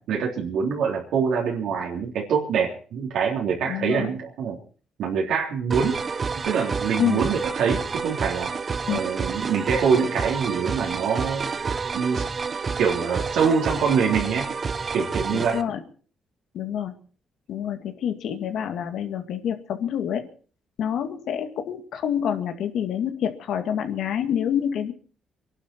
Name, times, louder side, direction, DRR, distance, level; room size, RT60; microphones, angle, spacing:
voice 1, 0.1-4.6 5.0-6.0 6.3-8.5 8.9-11.5 11.9-12.2 12.8-14.5 14.9-15.6, right 6 dB, 80° right, -2 dB, 3.4 m, -24 dB
voice 2, 3.7-4.1 7.0-7.2 8.9-9.0 15.3-15.8 16.5-16.9 17.5-20.3 20.8-24.9, left 9 dB, 75° left, 7 dB, 2.2 m, -27 dB
sound 1, 5.7-15.6, right 5 dB, 40° right, 1.0 m, -29 dB
24.0 x 11.5 x 4.5 m, 0.42 s
cardioid pair, 90°, 0 cm